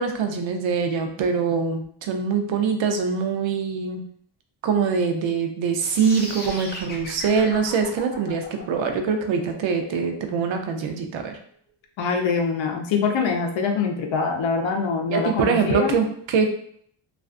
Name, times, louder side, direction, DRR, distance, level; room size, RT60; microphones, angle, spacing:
voice 1, 0.0-4.0 4.6-11.3 15.1-16.5, right 5 dB, 65° right, 5 dB, 0.5 m, -23 dB
sound 1, 5.8-11.8, left 1 dB, 20° left, 0.4 m, -38 dB
voice 2, 12.0-16.0, left 5 dB, 65° left, 3 dB, 0.6 m, -24 dB
2.4 x 2.4 x 2.3 m, 0.63 s
wide cardioid pair, 155°, 49 cm